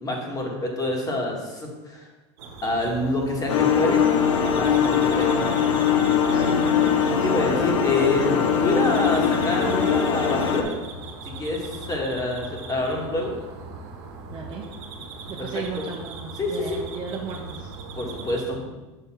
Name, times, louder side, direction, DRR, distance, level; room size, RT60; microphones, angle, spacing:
voice 1, 0.0-2.1 2.6-4.0 4.5-5.5 7.1-10.7 11.4-13.4 15.4-15.9 16.4-16.8 18.0-18.6, left 2 dB, 25° left, 0 dB, 1.7 m, -27 dB
sound 1, 2.4-18.4, right 3 dB, 65° right, 1.2 m, -39 dB
sound 2, 3.5-10.6, left 7 dB, 85° left, 0.8 m, -21 dB
voice 2, 6.3-6.6 11.7-11.8 14.3-14.6 15.4-17.7, right 5 dB, 30° right, -2 dB, 0.9 m, -35 dB
6.7 x 3.3 x 5.8 m, 1.1 s
hypercardioid pair, 105°, 15 cm